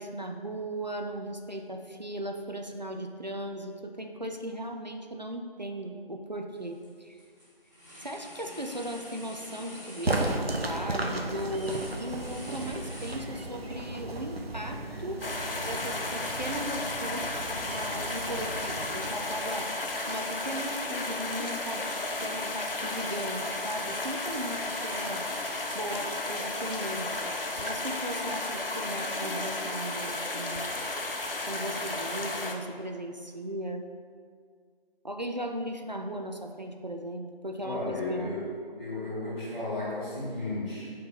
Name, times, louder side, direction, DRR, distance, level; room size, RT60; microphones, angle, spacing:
voice 1, 0.0-7.2 8.0-15.2 15.6-19.7 20.1-21.9 22.2-25.2 25.7-27.1 27.6-30.7 31.5-33.9 35.0-38.3, right 1 dB, 45° right, 3 dB, 0.5 m, -37 dB
sound 1, 6.5-6.9 7.2-13.7, equal, 20° left, 1.2 m, -47 dB
sound 2, 10.0-19.9, right 2 dB, 80° right, 0.9 m, -35 dB
sound 3, 15.2-32.5, left 2 dB, 65° left, 0.8 m, -33 dB
voice 2, 37.6-40.9, left 2 dB, 5° right, -19 dB, 1.6 m, -34 dB
5.2 x 3.9 x 5.7 m, 2.1 s
figure-of-eight pair, 170°, 30 cm